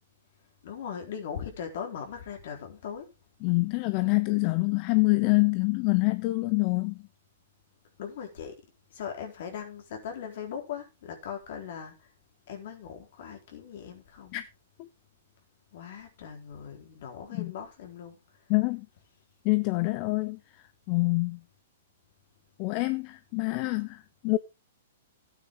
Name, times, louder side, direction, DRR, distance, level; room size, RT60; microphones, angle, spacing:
voice 1, 0.6-3.1 8.0-8.6 8.9-12.1 12.5-14.4 15.7-18.4, left 7 dB, 60° left, 3.9 m, -39 dB
voice 2, 3.4-7.1 14.3-14.4 14.8-14.9 17.3-17.5 18.5-18.9 19.4-21.4 22.6-24.4, left 25 dB, 40° left, 0.7 m, -26 dB
12.5 x 9.2 x 3.7 m
hypercardioid pair, 130°, 0 cm